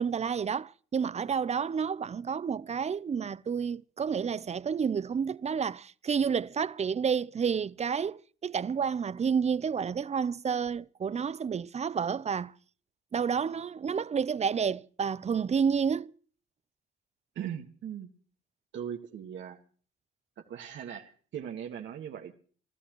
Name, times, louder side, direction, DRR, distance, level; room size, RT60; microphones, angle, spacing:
voice 1, 0.0-12.5 13.1-16.1, right 6 dB, 35° right, 0.7 m, -30 dB
voice 2, 17.4-18.1 18.7-19.6 20.4-22.3, right 9 dB, 70° right, 1.8 m, -39 dB
29.0 x 12.5 x 3.1 m
cardioid pair, 90°, 20 cm